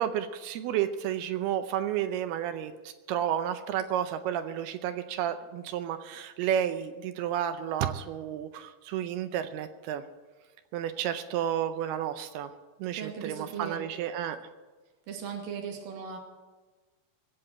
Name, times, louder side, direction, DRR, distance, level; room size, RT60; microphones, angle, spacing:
voice 1, 0.0-10.0 10.7-12.5 12.8-14.4, right 10 dB, 80° right, 9 dB, 2.4 m, -31 dB
voice 2, 13.0-13.8 15.1-16.2, right 7 dB, 60° right, 1 dB, 3.6 m, -38 dB
21.5 x 7.8 x 7.8 m, 1.3 s
omnidirectional pair, 5.1 m